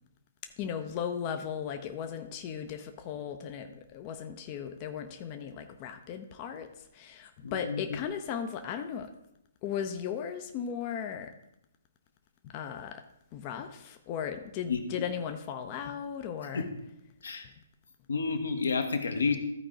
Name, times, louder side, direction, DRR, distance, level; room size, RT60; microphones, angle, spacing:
voice 1, 0.6-9.1 9.6-11.3 12.4-13.0 13.3-16.7 17.4-17.5, left 8 dB, 30° left, 6 dB, 0.7 m, -37 dB
voice 2, 7.4-7.8 14.7-15.0 16.5-16.7 17.2-17.5 18.1-19.4, left 4 dB, 65° left, 6 dB, 1.2 m, -30 dB
14.0 x 4.8 x 3.7 m, 0.82 s
figure-of-eight pair, 125°, 0 cm